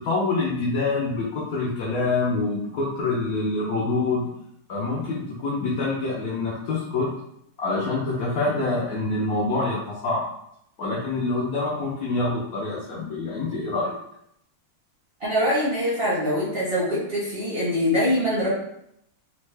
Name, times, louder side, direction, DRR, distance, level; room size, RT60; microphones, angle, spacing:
voice 1, 0.0-4.2 4.7-7.1 7.6-10.3 10.8-13.9, left 3 dB, 85° left, -5 dB, 0.8 m, -26 dB
voice 2, 15.2-18.5, equal, 50° right, -8 dB, 0.7 m, -23 dB
3.6 x 2.1 x 3.2 m, 0.76 s
omnidirectional pair, 2.3 m